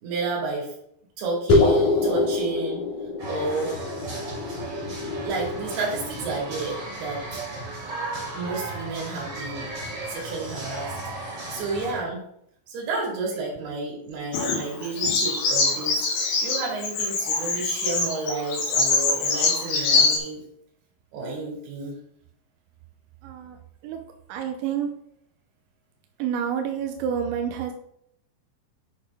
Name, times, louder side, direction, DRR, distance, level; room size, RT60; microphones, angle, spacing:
voice 1, 0.0-0.7 1.2-2.8 3.3-3.7 5.2-7.2 8.3-9.6 10.1-10.9 11.5-12.2 12.7-16.0 16.4-20.4 21.1-22.0, right 3 dB, 65° right, -2 dB, 4.2 m, -31 dB
sound 1, 1.5-6.3, left 3 dB, 50° left, 2.9 m, -25 dB
sound 2, 3.2-12.0, right 2 dB, 35° right, 3.3 m, -35 dB
Bird vocalization bird call bird song, 14.3-20.2, left 4 dB, 80° left, 4.2 m, -24 dB
voice 2, 23.2-23.6 23.8-24.0 24.3-24.9 26.2-27.7, right 8 dB, 90° right, 4 dB, 2.9 m, -28 dB
8.7 x 6.2 x 3.6 m, 0.72 s
omnidirectional pair, 5.1 m